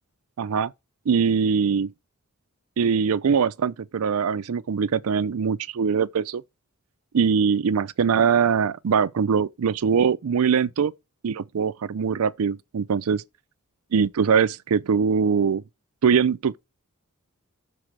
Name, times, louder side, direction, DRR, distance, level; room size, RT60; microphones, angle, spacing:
voice 1, 0.4-0.7 1.1-1.9 2.8-6.4 7.1-10.9 11.2-13.2 13.9-15.6 16.0-16.6, right 6 dB, 70° right, 0.4 m, -22 dB
6.4 x 4.1 x 5.9 m
head